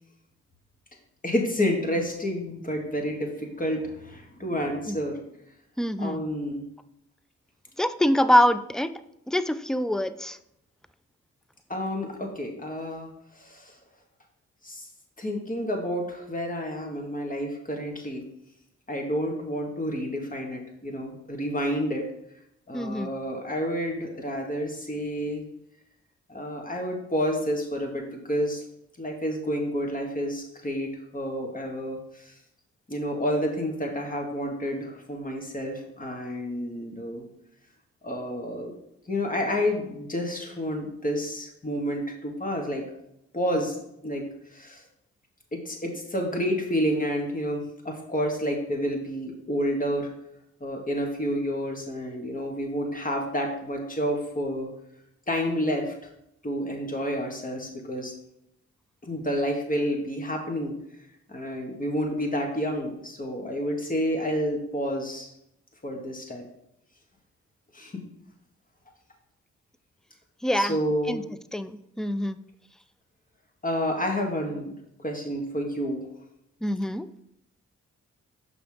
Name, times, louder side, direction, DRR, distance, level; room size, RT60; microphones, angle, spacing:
voice 1, 1.2-5.2 6.0-6.6 11.7-13.1 13.4-13.7 14.6-14.9 15.2-18.3 18.9-22.1 22.7-25.4 26.3-28.6 29.0-32.0 32.3-32.4 32.9-37.2 38.0-38.7 39.1-42.8 43.3-43.7 44.0-44.2 44.5-44.8 45.5-50.1 50.6-54.7 55.3-55.9 56.4-58.1 59.0-60.7 61.3-65.3 65.8-66.5 67.7-68.0 70.5-71.2 73.6-74.8 75.0-76.0, equal, 25° left, 1 dB, 2.0 m, -29 dB
voice 2, 5.8-6.2 7.8-8.9 9.3-10.4 22.7-23.1 70.4-70.8 71.1-71.2 71.5-72.4 76.6-77.1, equal, ahead, 13 dB, 0.4 m, -24 dB
6.3 x 5.7 x 3.7 m, 0.79 s
supercardioid pair, 45°, 30 cm